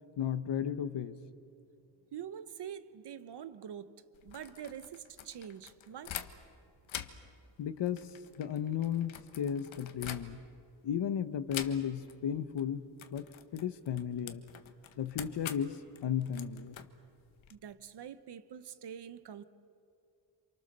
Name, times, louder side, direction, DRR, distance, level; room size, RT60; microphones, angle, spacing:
voice 1, 0.2-1.1 7.6-10.4 10.8-12.9 13.1-14.4 15.0-16.8, left 9 dB, 65° left, 1.1 m, -34 dB
voice 2, 2.1-6.2 17.5-19.4, right 9 dB, 60° right, 1.2 m, -45 dB
sound 1, 4.1-6.6 6.8-10.7 11.5-12.2 12.4-12.6 13.0-17.6, left 10 dB, 85° left, 1.4 m, -46 dB
28.5 x 27.5 x 6.8 m
wide cardioid pair, 140°, 46 cm